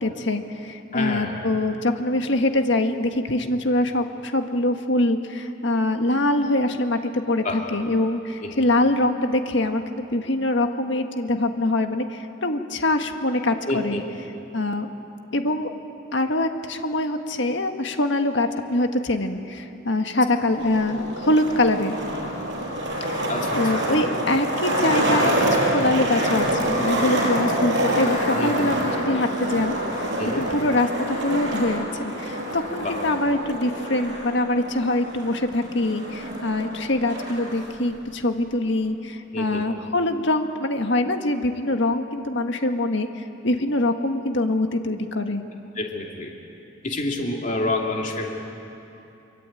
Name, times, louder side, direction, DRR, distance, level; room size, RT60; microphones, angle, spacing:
voice 1, 0.0-14.0 14.5-14.9 15.3-15.7 16.1-21.9 23.1-45.4, left 1 dB, 60° left, 6 dB, 1.7 m, -24 dB
voice 2, 0.9-1.4 7.4-7.6 8.4-8.7 13.7-14.0 23.3-23.8 27.9-28.0 28.3-28.7 30.2-30.5 32.7-32.9 39.3-39.8 45.8-46.3 46.8-48.3, left 2 dB, 40° left, 0 dB, 2.7 m, -28 dB
Skateboard, 20.5-37.5, right 1 dB, 60° right, 6.1 m, -26 dB
25.5 x 24.0 x 9.1 m, 2.9 s
head